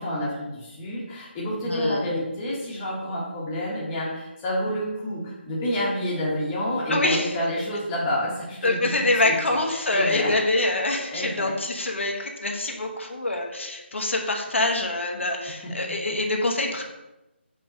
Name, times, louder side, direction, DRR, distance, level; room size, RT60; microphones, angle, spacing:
voice 1, 0.0-8.9 9.2-9.3 9.7-10.3 11.1-11.5, left 1 dB, 15° left, -6 dB, 1.2 m, -29 dB
voice 2, 1.7-2.0 6.9-7.4 8.6-16.8, left 2 dB, 85° left, 1 dB, 1.2 m, -25 dB
5.4 x 3.4 x 5.2 m, 0.98 s
figure-of-eight pair, 170°, 6 cm